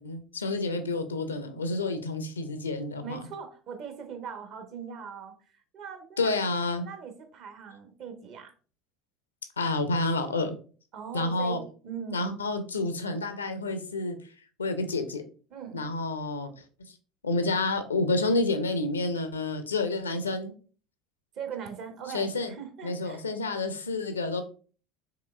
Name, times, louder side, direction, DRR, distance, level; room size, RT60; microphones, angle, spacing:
voice 1, 0.0-3.3 6.2-6.9 9.6-10.6 11.1-11.6 12.1-14.2 14.6-15.2 15.7-16.5 17.2-20.5 22.1-22.5 22.8-24.4, left 2 dB, 80° left, 8 dB, 0.5 m, -29 dB
voice 2, 3.0-5.3 5.7-6.4 6.8-8.5 10.9-12.3 15.5-15.8 21.4-23.2, right 7 dB, 50° right, 6 dB, 0.9 m, -40 dB
4.8 x 3.4 x 2.2 m, 0.40 s
figure-of-eight pair, 70°, 0 cm